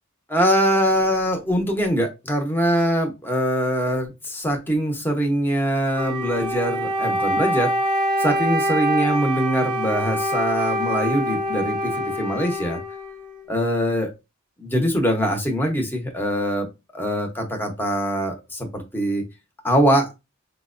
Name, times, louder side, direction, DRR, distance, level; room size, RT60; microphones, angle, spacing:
voice 1, 0.3-7.7 8.2-12.8 13.5-14.1 14.6-16.7 16.9-19.2 19.6-20.1, equal, 10° left, 3 dB, 0.7 m, -23 dB
Wind instrument woodwind instrument, 5.9-13.5, equal, 20° right, 0.8 m, -25 dB
4.5 x 2.1 x 2.4 m, 0.24 s
head